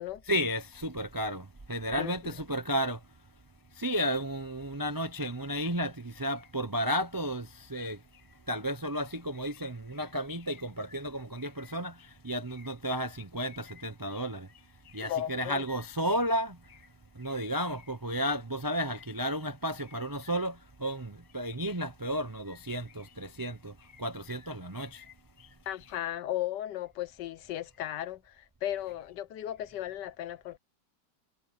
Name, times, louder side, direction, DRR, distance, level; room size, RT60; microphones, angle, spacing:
voice 1, 0.3-3.0 3.8-8.0 8.5-11.9 12.2-14.5 14.9-16.5 17.2-20.5 20.8-23.7 24.0-25.0, equal, 30° right, 0.3 m, -33 dB
voice 2, 2.0-2.3 15.1-15.6 25.7-30.6, left 12 dB, 80° left, 1.4 m, -36 dB
omnidirectional pair, 1.9 m